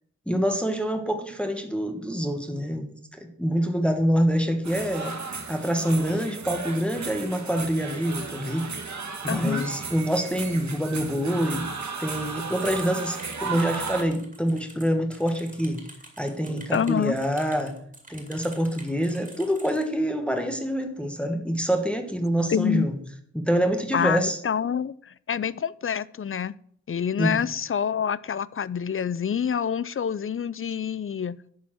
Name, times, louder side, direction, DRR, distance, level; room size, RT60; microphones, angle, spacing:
voice 1, 0.3-5.1 5.5-8.7 9.2-11.7 12.0-15.8 16.2-17.8 18.1-22.9 23.3-24.4 27.2-27.4, equal, 5° left, 5 dB, 1.2 m, -26 dB
sound 1, 4.6-14.0, right 4 dB, 70° right, 1.4 m, -35 dB
voice 2, 9.3-9.7 16.7-17.1 22.5-22.9 23.9-26.5 26.9-31.4, left 8 dB, 45° left, 19 dB, 0.4 m, -27 dB
sound 2, 12.5-19.8, right 2 dB, 25° right, 2.5 m, -48 dB
11.0 x 4.3 x 7.3 m, 0.64 s
wide cardioid pair, 70°, 29 cm